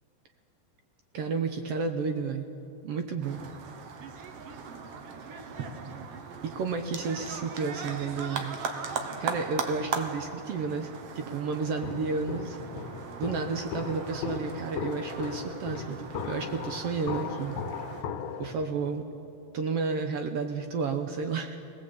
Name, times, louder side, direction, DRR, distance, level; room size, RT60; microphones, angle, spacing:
voice 1, 1.1-2.5 2.8-3.4 6.4-8.6 9.2-10.9 11.1-12.6 13.2-17.6 18.4-19.2 19.5-21.6, right 4 dB, 75° right, 6 dB, 1.4 m, -31 dB
sound 1, 3.2-18.0, right 5 dB, 60° right, 1.8 m, -39 dB
Walk footsteps, 11.8-18.5, left 6 dB, 85° left, 2.9 m, -37 dB
23.5 x 18.0 x 8.3 m, 2.7 s
omnidirectional pair, 4.0 m